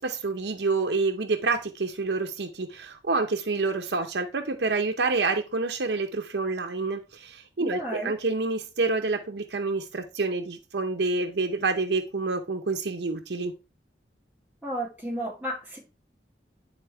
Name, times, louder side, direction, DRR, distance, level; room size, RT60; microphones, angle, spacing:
voice 1, 0.0-13.5, right 3 dB, 70° right, 4 dB, 0.7 m, -28 dB
voice 2, 7.6-8.1 14.6-15.8, right 1 dB, 5° right, -4 dB, 4.5 m, -32 dB
9.8 x 4.1 x 3.4 m, 0.30 s
head